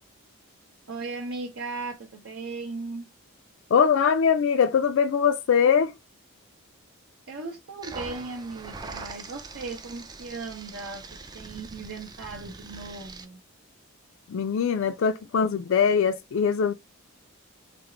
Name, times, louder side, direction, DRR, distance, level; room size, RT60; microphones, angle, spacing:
voice 1, 0.9-3.1 7.3-11.0 11.3-13.4, right 3 dB, 60° right, 0.8 m, -37 dB
voice 2, 3.7-5.9 14.3-16.7, left 7 dB, 60° left, 0.3 m, -22 dB
sound 1, 7.8-13.2, right 3 dB, 20° right, 0.3 m, -42 dB
4.2 x 2.0 x 3.8 m
head